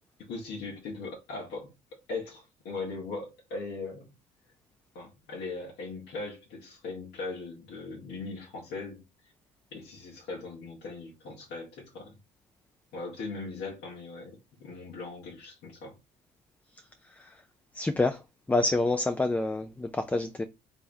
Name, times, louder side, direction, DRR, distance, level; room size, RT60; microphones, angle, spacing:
voice 1, 0.2-1.7 2.1-4.1 4.9-9.0 9.7-12.2 12.9-15.9, left 3 dB, 80° left, 1.6 m, -39 dB
voice 2, 17.7-18.2 18.5-20.4, left 2 dB, 10° left, 0.3 m, -27 dB
3.4 x 3.4 x 2.6 m
cardioid pair, 110°, 17 cm